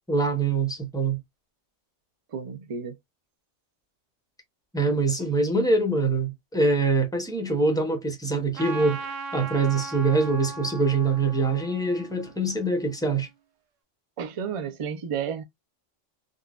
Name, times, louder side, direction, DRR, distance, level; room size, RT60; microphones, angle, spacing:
voice 1, 0.1-1.2 4.7-13.3, right 3 dB, 5° left, 0.5 m, -24 dB
voice 2, 2.3-3.0 14.2-15.4, right 7 dB, 50° right, 0.4 m, -32 dB
Trumpet, 8.5-13.2, right 4 dB, 85° right, 1.0 m, -39 dB
3.8 x 2.3 x 2.3 m
omnidirectional pair, 1.3 m